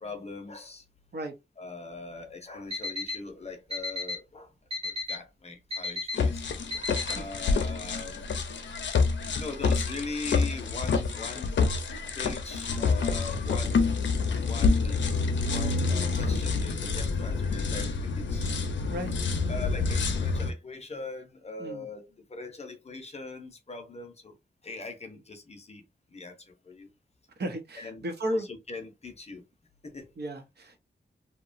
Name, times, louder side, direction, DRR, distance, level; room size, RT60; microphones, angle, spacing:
voice 1, 0.0-0.8 1.6-4.5 4.8-6.4 7.1-8.3 9.3-11.6 12.2-13.8 14.4-15.1 15.5-18.5 19.5-24.4 24.6-25.8 26.1-26.9 27.8-28.1 28.3-29.4 29.8-30.1, left 3 dB, 35° left, 0.6 m, -41 dB
Alarm, 2.7-3.2 3.7-4.2 4.7-5.2 5.7-6.2 6.7-7.2, left 2 dB, 30° right, 0.7 m, -32 dB
sound 1, 6.1-20.5, left 4 dB, 90° left, 0.5 m, -27 dB
voice 2, 27.4-28.5 30.2-30.8, right 1 dB, 65° right, 0.7 m, -34 dB
2.8 x 2.2 x 2.5 m
wide cardioid pair, 130°, 18 cm